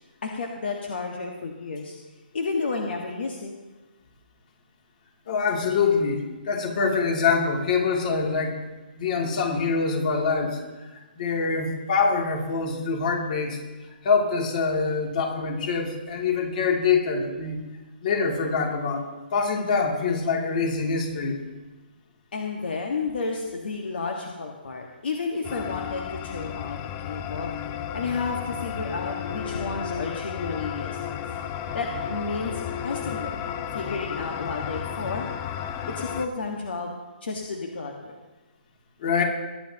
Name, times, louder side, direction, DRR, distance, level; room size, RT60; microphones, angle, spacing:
voice 1, 0.2-2.0 2.3-3.5 22.3-26.8 27.0-27.6 27.9-31.2 31.7-35.3 35.9-36.9 37.2-38.2, left 4 dB, 75° left, 1 dB, 1.7 m, -31 dB
voice 2, 5.3-8.6 9.0-13.6 14.0-17.6 18.0-19.0 19.3-21.4 39.0-39.2, left 5 dB, 50° left, 0 dB, 2.9 m, -25 dB
sound 1, 25.4-36.3, left 9 dB, 30° left, 0.7 m, -33 dB
20.0 x 10.0 x 3.0 m, 1.2 s
hypercardioid pair, 145°, 6 cm